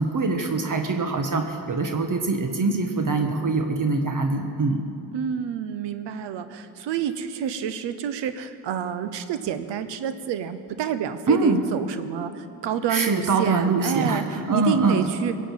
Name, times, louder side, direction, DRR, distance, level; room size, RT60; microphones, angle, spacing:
voice 1, 0.0-4.8 11.3-11.6 12.9-15.1, right 3 dB, 45° right, 4 dB, 1.5 m, -23 dB
voice 2, 5.1-14.2 14.5-15.3, right 8 dB, 80° right, 11 dB, 0.9 m, -28 dB
17.0 x 8.2 x 7.4 m, 2.5 s
supercardioid pair, 45°, 42 cm